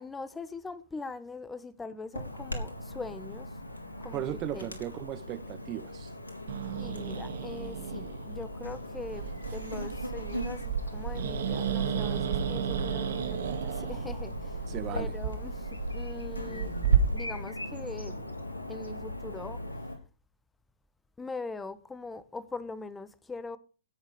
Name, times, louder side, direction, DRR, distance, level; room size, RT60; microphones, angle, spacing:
voice 1, 0.0-3.5 4.0-4.2 4.5-4.8 6.8-14.7 14.9-16.7 17.1-18.4 18.7-19.6 21.2-23.6, left 3 dB, 10° left, 1.3 m, -42 dB
Chirp tweet / Buzz, 2.1-20.0, left 1 dB, 90° left, 3.8 m, -39 dB
voice 2, 4.1-6.1 14.7-15.1, right 14 dB, 30° right, 0.8 m, -36 dB
Growling, 6.5-17.0, right 9 dB, 60° right, 2.2 m, -33 dB
16.5 x 7.2 x 5.2 m
figure-of-eight pair, 120°, 0 cm